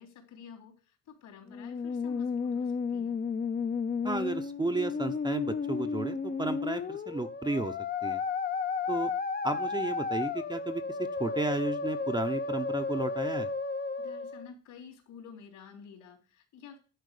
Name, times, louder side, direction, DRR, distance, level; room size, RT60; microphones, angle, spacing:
voice 1, 0.0-3.2 14.0-16.8, left 6 dB, 70° left, 0 dB, 3.6 m, -50 dB
Musical instrument, 1.5-14.5, left 5 dB, 30° left, 0.7 m, -33 dB
voice 2, 4.0-7.7 8.0-8.2 8.9-9.1 9.4-10.8 11.2-13.5, right 2 dB, 15° right, 7 dB, 0.8 m, -33 dB
11.0 x 4.3 x 6.6 m, 0.37 s
cardioid pair, 95°, 31 cm